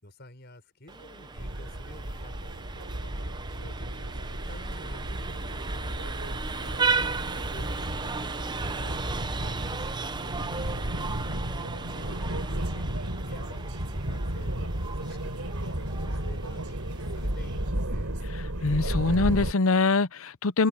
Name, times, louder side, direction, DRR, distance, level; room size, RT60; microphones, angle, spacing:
voice 1, 0.0-3.1 3.5-10.0 10.9-12.9 13.2-18.1, left 1 dB, 45° left, 6.3 m, -51 dB
Vehicle horn car horn honking, 0.9-17.7, right 4 dB, 20° right, 0.7 m, -36 dB
sound 1, 1.4-19.5, right 1 dB, 85° right, 3.7 m, -33 dB
voice 2, 18.3-20.7, left 3 dB, 70° left, 0.8 m, -24 dB
head